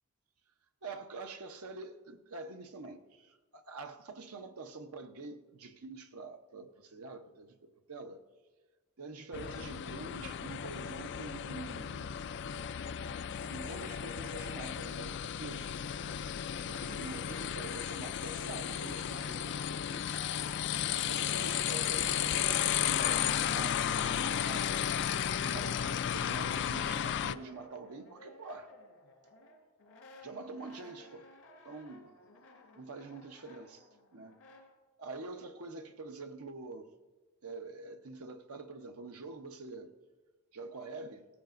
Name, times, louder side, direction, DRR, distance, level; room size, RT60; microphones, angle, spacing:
voice 1, 0.8-8.2 9.0-12.1 13.3-15.7 16.0-16.2 16.7-19.6 19.9-20.1 20.9-24.8 25.4-28.7 30.2-31.3 31.6-32.1 32.7-34.4 35.0-36.9 37.4-39.9 40.5-41.2, right 3 dB, 75° right, 0.8 m, -46 dB
sound 1, 9.3-27.4, left 9 dB, 50° left, 0.3 m, -34 dB
Brass instrument, 17.8-22.2 22.5-34.7, left 1 dB, 85° left, 2.9 m, -56 dB
17.0 x 14.5 x 2.5 m
head